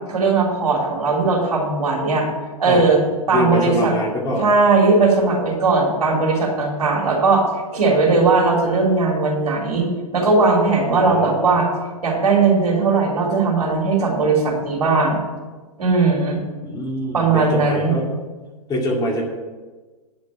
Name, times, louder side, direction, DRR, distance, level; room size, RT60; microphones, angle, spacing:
voice 1, 0.1-2.3 2.6-3.0 3.3-3.9 4.4-7.4 7.7-9.9 10.1-11.7 12.0-15.2 15.8-16.4 17.1-17.9, right 3 dB, 80° right, -2 dB, 3.5 m, -18 dB
voice 2, 3.3-4.5 10.9-11.5 16.6-18.2 18.7-19.2, left 1 dB, 20° left, -1 dB, 2.3 m, -24 dB
10.5 x 5.3 x 8.5 m, 1.3 s
hypercardioid pair, 110°, 19 cm